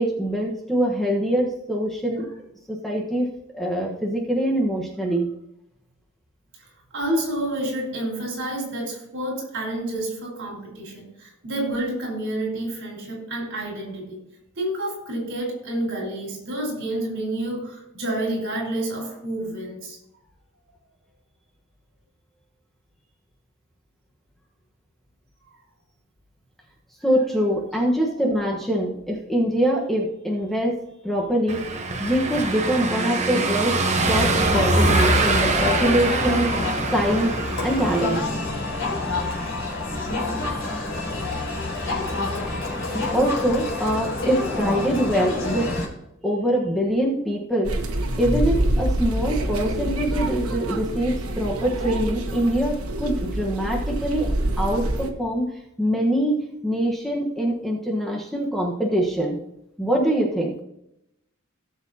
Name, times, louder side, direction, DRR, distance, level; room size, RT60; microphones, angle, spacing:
voice 1, 0.0-2.3 2.7-3.3 3.5-5.3 27.0-30.7 31.0-31.6 32.0-36.5 36.9-37.3 37.6-38.2 43.1-45.7 46.2-47.8 48.2-55.4 55.8-59.4 59.8-60.5, equal, ahead, -2 dB, 1.3 m, -24 dB
voice 2, 6.9-14.2 14.6-20.0 28.1-28.4 40.3-41.1, right 1 dB, 60° right, -1 dB, 4.8 m, -29 dB
Car passing by / Engine, 31.5-38.2, right 3 dB, 35° right, 1.1 m, -24 dB
Crowd, 33.9-45.9, left 2 dB, 60° left, 3.8 m, -27 dB
sound 1, 47.6-55.1, right 1 dB, 90° right, 1.3 m, -26 dB
17.5 x 7.0 x 2.9 m, 0.82 s
head